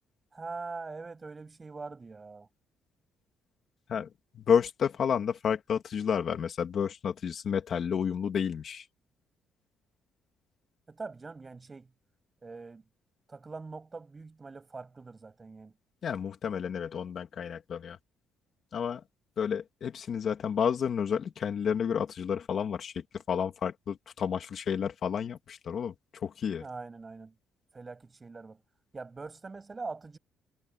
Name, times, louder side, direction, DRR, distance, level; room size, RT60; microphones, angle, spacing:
voice 1, 0.3-2.5 10.9-11.9 12.4-12.8 13.3-15.7 26.6-27.3 27.7-28.6 28.9-30.2, right 4 dB, 20° right, 7.2 m, -43 dB
voice 2, 4.3-8.8 16.0-18.0 18.7-19.0 19.4-25.9 26.2-26.6, left 7 dB, 40° left, 2.7 m, -30 dB
cardioid pair, 175°, 0 cm